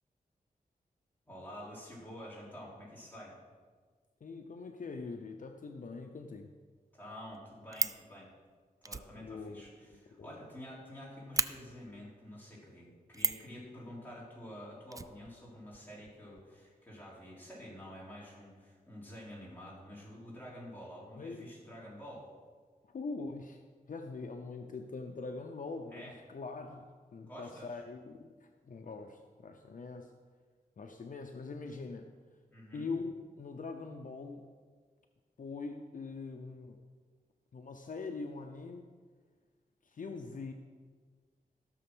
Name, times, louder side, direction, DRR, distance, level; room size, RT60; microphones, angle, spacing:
voice 1, 1.3-3.4 6.9-8.3 8.8-22.3 25.9-26.1 27.3-27.8 32.5-32.9, equal, 10° left, -6 dB, 4.0 m, -49 dB
voice 2, 4.2-6.5 9.1-9.6 9.9-10.4 21.2-21.5 22.8-23.6 23.9-30.1 30.8-32.1 32.7-34.5 35.4-36.8 37.5-38.9 39.8-40.5, left 4 dB, 60° left, 4 dB, 0.8 m, -43 dB
Fire, 6.9-7.0 7.3-8.1 8.8-10.6 10.9-11.0 11.3-11.5 13.1-13.5 14.9-15.8 16.1-16.2 16.4-16.5, right 3 dB, 20° right, 0.4 m, -34 dB
15.0 x 6.7 x 6.2 m, 1.5 s
wide cardioid pair, 135°, 15 cm